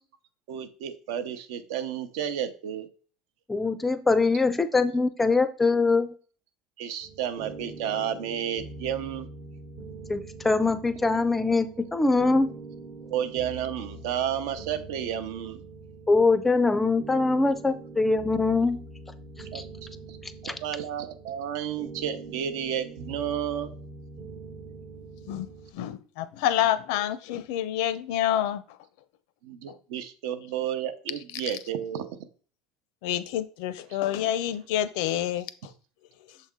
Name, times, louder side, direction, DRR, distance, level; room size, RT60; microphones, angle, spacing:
voice 1, 0.5-2.9 6.8-9.3 13.1-15.6 19.5-19.7 20.1-20.2 20.4-23.7 29.4-32.2, right 9 dB, 80° right, 10 dB, 0.7 m, -32 dB
voice 2, 3.5-6.1 10.1-12.5 16.1-18.8 20.4-20.5, left 3 dB, 10° left, 12 dB, 0.4 m, -23 dB
sound 1, 7.0-25.7, right 3 dB, 50° right, 0.9 m, -43 dB
voice 3, 25.3-28.8 29.7-29.8 31.4-31.6 33.0-35.7, left 12 dB, 70° left, 14 dB, 0.5 m, -28 dB
6.6 x 4.1 x 3.6 m, 0.41 s
cardioid pair, 170°, 2 cm